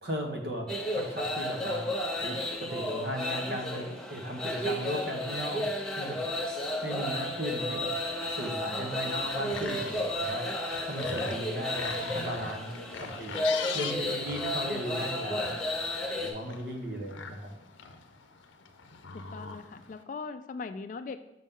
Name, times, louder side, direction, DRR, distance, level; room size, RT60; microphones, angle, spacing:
voice 1, 0.0-1.9 2.2-5.7 5.9-6.2 6.8-7.9 8.3-10.5 10.8-13.4 13.7-15.5 16.2-17.5, equal, 55° right, 2 dB, 1.1 m, -36 dB
sound 1, 0.7-16.3, left 1 dB, 5° left, 0.7 m, -33 dB
sound 2, 9.2-20.0, left 5 dB, 85° left, 0.6 m, -42 dB
voice 2, 19.1-21.2, left 4 dB, 45° left, 10 dB, 0.3 m, -40 dB
6.1 x 5.5 x 3.7 m, 0.86 s
head